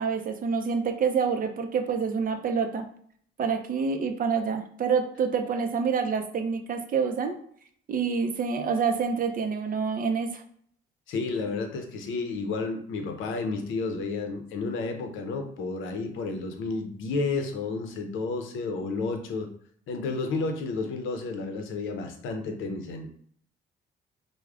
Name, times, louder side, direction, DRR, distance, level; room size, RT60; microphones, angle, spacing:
voice 1, 0.0-2.9 3.4-7.4 7.9-10.4, right 5 dB, 45° right, 6 dB, 0.5 m, -27 dB
voice 2, 11.1-19.5 19.9-23.2, left 3 dB, 80° left, 6 dB, 0.6 m, -31 dB
4.6 x 2.1 x 2.4 m, 0.62 s
cardioid pair, 90°, 20 cm